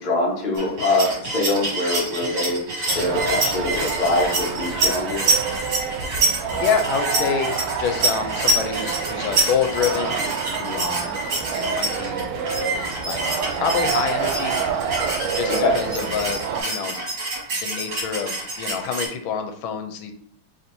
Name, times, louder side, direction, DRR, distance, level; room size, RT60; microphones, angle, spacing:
voice 1, 0.0-2.6 2.9-5.2 15.5-15.7, left 2 dB, 35° left, -2 dB, 0.7 m, -23 dB
sound 1, 0.5-19.1, right 2 dB, 55° right, 1.9 m, -26 dB
sound 2, 2.9-16.6, right 6 dB, 90° right, 1.5 m, -28 dB
voice 2, 6.6-10.2 10.6-11.2 11.5-12.3 13.0-13.2 13.6-14.6 15.2-17.0 17.5-20.1, left 7 dB, 80° left, 6 dB, 1.4 m, -27 dB
4.3 x 3.5 x 2.6 m, 0.62 s
omnidirectional pair, 2.2 m